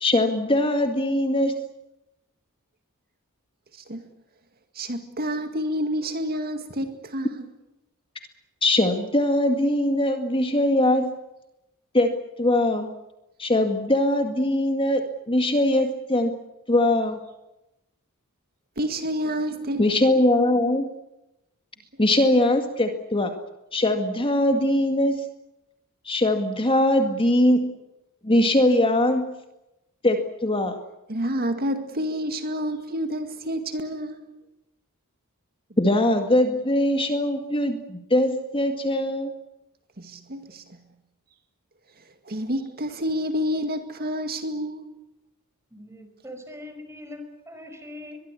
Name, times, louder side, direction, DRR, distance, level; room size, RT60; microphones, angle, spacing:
voice 1, 0.0-1.6 8.6-11.1 11.9-12.1 12.4-12.9 13.4-16.3 16.7-17.2 19.8-20.9 22.0-23.3 23.7-25.2 26.1-27.8 28.2-29.4 30.0-30.8 35.8-39.3, left 1 dB, 25° left, 2.0 m, -21 dB
voice 2, 3.7-4.1 4.8-7.5 18.8-19.8 31.1-34.4 40.0-40.6 42.3-45.0, equal, 45° right, 2.1 m, -29 dB
voice 3, 45.7-48.2, left 1 dB, 10° right, 5.2 m, -41 dB
23.5 x 22.5 x 8.4 m
head